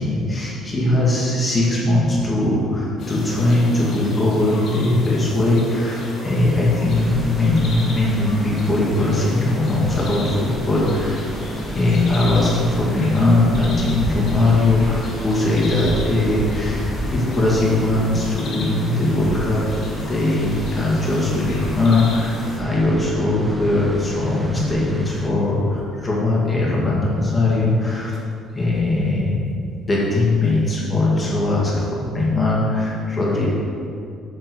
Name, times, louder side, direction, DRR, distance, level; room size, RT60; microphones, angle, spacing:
voice 1, 0.0-11.3 11.7-19.6 20.0-28.2 28.5-29.4 29.9-33.5, left 2 dB, 20° left, -5 dB, 1.8 m, -20 dB
sound 1, 3.0-22.6, left 2 dB, 50° left, 1.5 m, -35 dB
sound 2, 6.9-25.3, right 1 dB, 5° right, 0.5 m, -31 dB
7.6 x 6.1 x 4.7 m, 2.5 s
cardioid pair, 165°, 0 cm